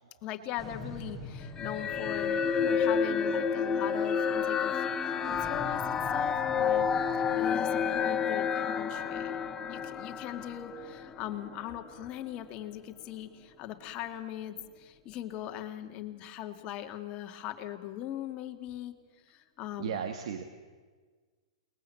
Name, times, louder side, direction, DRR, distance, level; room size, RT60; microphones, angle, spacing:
voice 1, 0.2-4.9 5.2-6.9 7.2-9.4 9.7-19.0 19.3-19.9, left 12 dB, 35° left, 6 dB, 2.3 m, -40 dB
sound 1, 0.6-17.0, left 2 dB, 5° right, 6.7 m, -47 dB
sound 2, 1.6-11.1, left 7 dB, 20° left, 1.1 m, -29 dB
voice 2, 19.8-20.4, right 7 dB, 70° right, 6 dB, 2.1 m, -36 dB
29.0 x 21.5 x 7.9 m, 1.4 s
hypercardioid pair, 135°, 3 cm